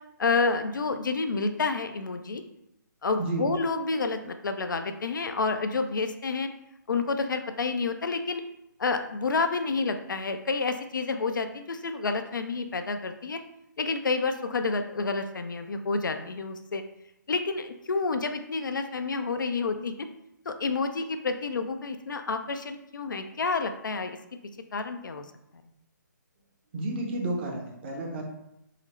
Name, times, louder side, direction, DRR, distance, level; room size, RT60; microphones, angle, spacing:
voice 1, 0.2-2.4 3.0-6.5 6.9-8.4 8.8-13.4 13.8-16.8 17.3-20.1 20.5-24.2 24.7-25.2, left 4 dB, 75° left, 8 dB, 0.4 m, -29 dB
voice 2, 26.7-28.2, right 2 dB, 30° right, 1 dB, 0.7 m, -31 dB
3.8 x 2.0 x 4.2 m, 0.83 s
figure-of-eight pair, 140°, 11 cm